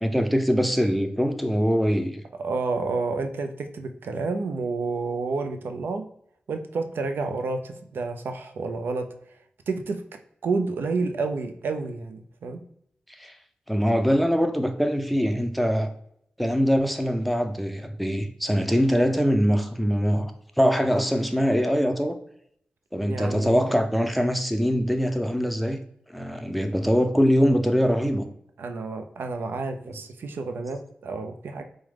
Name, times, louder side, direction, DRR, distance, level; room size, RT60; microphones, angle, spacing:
voice 1, 0.0-2.2 13.2-13.3 13.7-15.9 16.4-20.3 20.6-22.1 22.9-25.8 26.1-28.3, equal, ahead, 0.5 m, -23 dB
voice 2, 2.4-6.1 6.5-9.4 9.7-10.0 10.4-12.6 23.0-23.8 28.6-31.6, right 3 dB, 85° right, 0.4 m, -30 dB
4.7 x 2.1 x 3.2 m
cardioid pair, 55°, 4 cm